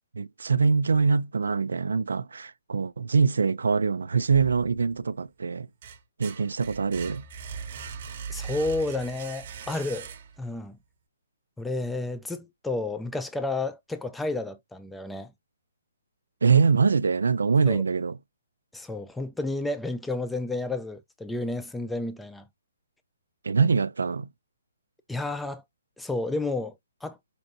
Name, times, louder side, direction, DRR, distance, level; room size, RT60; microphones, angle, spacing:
voice 1, 0.1-5.7 6.2-7.2 16.4-18.2 23.4-24.3, right 5 dB, 90° right, 0.3 m, -24 dB
sound 1, 4.3-5.1 5.5-10.6, right 6 dB, 40° right, 0.8 m, -40 dB
voice 2, 8.3-10.1 10.4-10.8 11.6-15.3 17.7-17.8 18.7-22.5 25.1-25.6 26.0-26.7 27.0-27.2, left 2 dB, 5° left, 0.4 m, -31 dB
5.2 x 2.6 x 2.5 m
hypercardioid pair, 165°, 0 cm